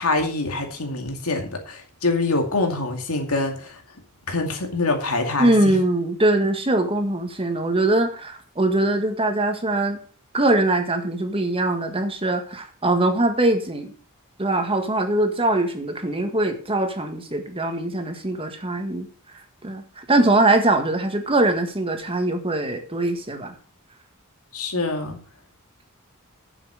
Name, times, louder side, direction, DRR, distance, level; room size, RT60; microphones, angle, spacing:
voice 1, 0.0-3.8 4.3-5.5 24.5-25.2, left 2 dB, 90° left, 4 dB, 2.4 m, -25 dB
voice 2, 5.4-10.0 10.3-13.9 14.4-19.1 19.6-23.5, right 2 dB, 25° right, 6 dB, 1.6 m, -22 dB
8.7 x 7.3 x 6.2 m, 0.42 s
head